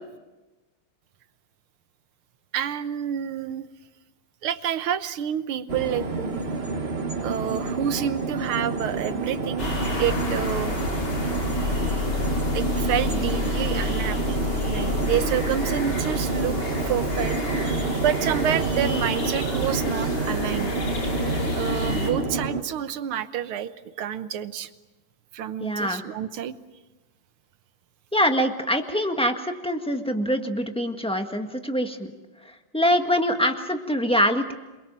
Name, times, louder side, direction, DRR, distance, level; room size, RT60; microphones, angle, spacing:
voice 1, 2.5-3.7 4.4-6.5 7.2-9.7 10.0-10.8 12.5-14.4 14.7-16.6 16.8-17.4 17.6-20.7 21.5-24.7 25.3-26.6, right 10 dB, 75° right, 12 dB, 1.9 m, -28 dB
sound 1, 5.7-22.6, right 3 dB, 35° right, 1.4 m, -28 dB
sound 2, 9.6-22.1, left 2 dB, 65° left, 5.1 m, -29 dB
voice 2, 25.6-26.0 28.1-32.1 32.4-34.5, equal, 5° left, 5 dB, 1.4 m, -24 dB
27.5 x 22.5 x 7.6 m, 1.1 s
omnidirectional pair, 2.4 m